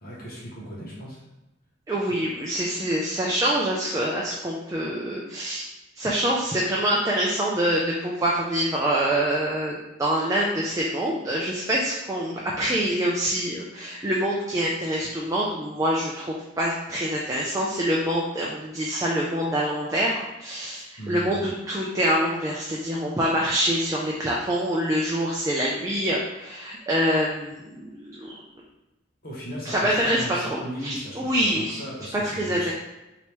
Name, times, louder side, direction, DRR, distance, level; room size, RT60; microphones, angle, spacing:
voice 1, 0.0-1.2 20.7-21.5 29.2-32.7, equal, 50° left, -6 dB, 0.9 m, -37 dB
voice 2, 1.9-5.6 6.0-28.4 29.7-31.8 32.1-32.7, right 1 dB, 15° right, -4 dB, 0.4 m, -25 dB
3.3 x 2.8 x 3.0 m, 1.0 s
head